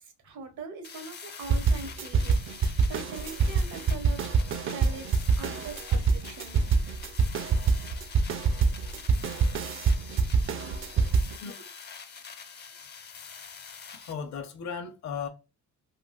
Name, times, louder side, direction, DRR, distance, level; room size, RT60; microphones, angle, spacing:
voice 1, 0.0-2.4 2.9-4.2 4.7-6.6, right 4 dB, 75° right, 1.1 m, -42 dB
sound 1, 0.8-14.1, left 6 dB, 35° left, 0.5 m, -45 dB
sound 2, 1.5-11.4, right 5 dB, 45° right, 0.5 m, -25 dB
voice 2, 13.9-15.3, left 6 dB, 65° left, 0.9 m, -37 dB
3.7 x 2.4 x 2.3 m
cardioid pair, 90°, 30 cm